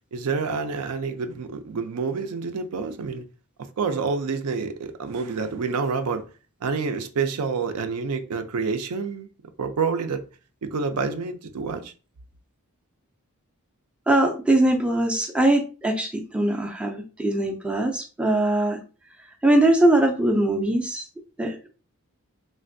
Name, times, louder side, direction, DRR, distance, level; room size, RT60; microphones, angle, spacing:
voice 1, 0.1-3.2 3.8-6.3 6.6-9.3 9.6-10.2 10.6-11.9, right 5 dB, 90° right, 0.5 m, -28 dB
voice 2, 14.1-18.8 19.4-21.1 21.4-21.7, right 1 dB, 5° right, 0.3 m, -21 dB
3.2 x 2.5 x 2.5 m
head